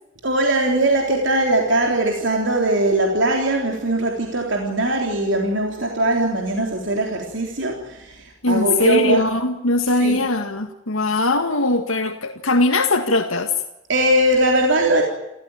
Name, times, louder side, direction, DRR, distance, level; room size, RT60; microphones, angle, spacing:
voice 1, 0.2-9.3 10.0-10.2 13.9-15.0, right 1 dB, 65° right, 1 dB, 3.6 m, -20 dB
voice 2, 8.4-13.5, left 2 dB, 90° left, 4 dB, 1.9 m, -20 dB
28.5 x 15.0 x 9.1 m, 0.90 s
head